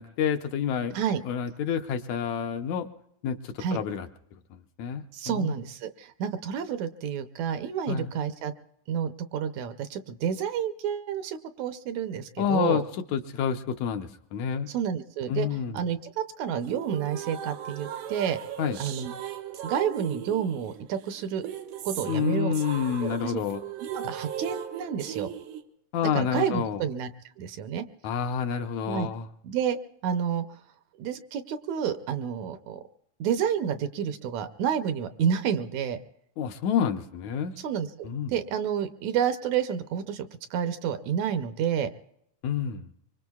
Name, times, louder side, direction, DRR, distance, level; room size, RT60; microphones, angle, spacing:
voice 1, 0.0-1.0 1.3-2.9 3.2-4.1 4.8-5.6 7.9-8.1 12.4-12.9 13.1-14.7 15.3-15.8 18.6-18.8 22.1-23.6 25.9-26.8 28.0-29.3 36.4-37.5 38.0-38.3 42.4-42.9, left 7 dB, 75° left, 6 dB, 1.9 m, -28 dB
voice 2, 5.1-8.5 8.9-12.8 14.7-15.5 15.7-18.4 18.8-19.1 19.6-21.4 21.8-22.5 23.0-23.4 23.8-25.3 26.0-27.1 27.4-27.9 28.9-29.1 29.4-29.8 30.0-30.4 31.0-32.8 33.2-36.0 37.6-41.9, right 8 dB, 75° right, 9 dB, 1.9 m, -29 dB
sound 1, 16.6-25.6, right 9 dB, 90° right, 2.6 m, -38 dB
24.5 x 24.5 x 2.3 m, 0.77 s
omnidirectional pair, 3.5 m